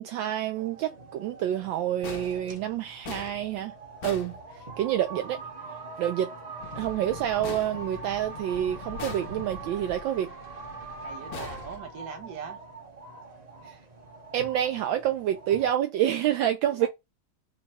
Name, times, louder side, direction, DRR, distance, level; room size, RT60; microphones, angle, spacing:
voice 1, 0.0-3.7 4.0-4.4 4.8-5.4 6.0-6.3 6.8-10.3 13.7-13.8 14.3-16.9, right 11 dB, 75° right, 1.2 m, -28 dB
sound 1, 0.5-15.7, right 4 dB, 35° right, 0.7 m, -43 dB
sound 2, 2.0-5.1 7.4-8.5 9.0-9.8 11.3-12.4, left 6 dB, 60° left, 1.1 m, -42 dB
sound 3, 6.6-11.8, left 5 dB, 75° left, 0.5 m, -45 dB
voice 2, 11.0-12.6 16.7-16.9, right 6 dB, 55° right, 1.4 m, -40 dB
5.1 x 2.3 x 4.2 m
omnidirectional pair, 2.2 m